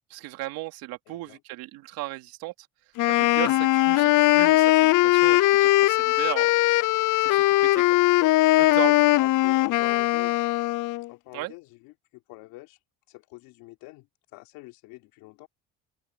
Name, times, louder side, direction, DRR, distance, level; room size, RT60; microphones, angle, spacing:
voice 1, 0.1-2.5 3.1-6.5 6.9-8.0 8.6-9.0 11.3-11.5, right 19 dB, 85° right, 3.0 m, -36 dB
voice 2, 1.1-1.4 9.2-10.5 11.1-12.8 13.1-15.5, left 20 dB, 85° left, 3.5 m, -46 dB
Wind instrument woodwind instrument, 3.0-11.1, left 18 dB, 60° left, 0.6 m, -20 dB
supercardioid pair, 90°, 35 cm